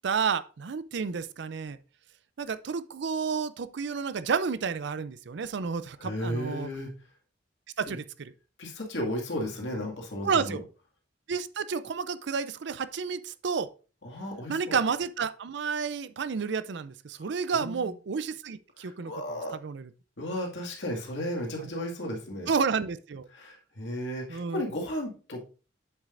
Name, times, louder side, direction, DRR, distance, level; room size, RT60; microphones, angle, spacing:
voice 1, 0.0-1.8 2.4-6.7 7.8-8.3 10.2-10.6 11.3-13.7 14.5-19.1 19.5-19.9 22.5-23.3 24.3-24.6, right 5 dB, 70° right, 0.5 m, -30 dB
voice 2, 6.0-6.9 7.9-8.0 8.6-10.6 14.0-14.8 17.5-17.9 18.8-19.6 20.2-22.5 23.3-25.5, equal, 75° left, 2.1 m, -34 dB
8.0 x 7.3 x 2.5 m
head